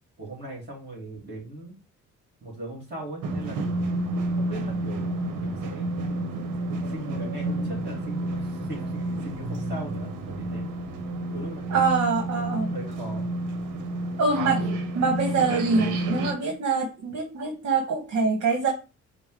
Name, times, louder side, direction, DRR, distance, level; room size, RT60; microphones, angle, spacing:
voice 1, 0.2-1.7 2.4-6.0 6.9-10.7 11.3-11.8 12.4-13.3, right 1 dB, 35° right, -2 dB, 2.4 m, -39 dB
sound 1, 3.2-16.3, right 2 dB, 85° right, 0.8 m, -30 dB
voice 2, 11.7-12.7 14.2-14.6 14.9-18.7, right 4 dB, 60° right, 2 dB, 1.2 m, -24 dB
5.2 x 2.1 x 4.6 m, 0.31 s
cardioid pair, 90°, 30 cm